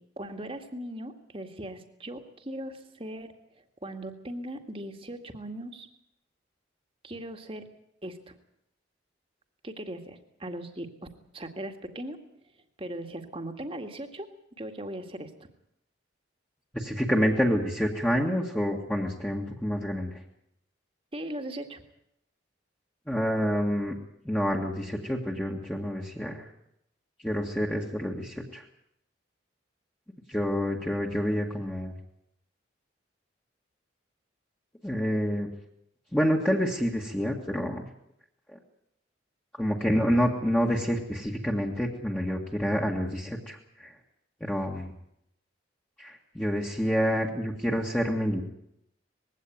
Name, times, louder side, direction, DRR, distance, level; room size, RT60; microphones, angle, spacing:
voice 1, 0.2-3.3 3.8-5.9 7.0-7.6 8.0-8.3 9.6-10.9 11.3-12.2 12.8-14.3 14.6-15.5 21.1-21.8, right 1 dB, 30° right, 5 dB, 2.0 m, -38 dB
voice 2, 16.7-20.1 23.1-24.0 24.3-26.4 27.2-28.6 30.3-31.9 34.8-35.5 36.1-37.8 39.6-43.6 44.4-44.9 46.0-48.4, equal, 10° left, -3 dB, 2.0 m, -28 dB
21.0 x 16.5 x 9.4 m, 0.77 s
head